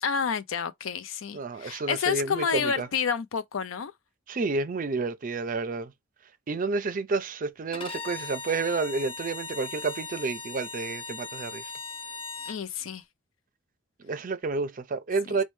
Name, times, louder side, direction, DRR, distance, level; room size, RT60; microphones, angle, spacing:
voice 1, 0.0-3.9 12.5-13.0 15.3-15.4, left 6 dB, 85° left, 0.5 m, -29 dB
voice 2, 1.3-2.9 4.3-5.9 6.5-11.6 14.0-15.4, right 3 dB, 45° right, 0.5 m, -30 dB
Bowed string instrument, 7.7-12.6, left 4 dB, 25° left, 0.5 m, -39 dB
4.3 x 2.1 x 3.1 m
head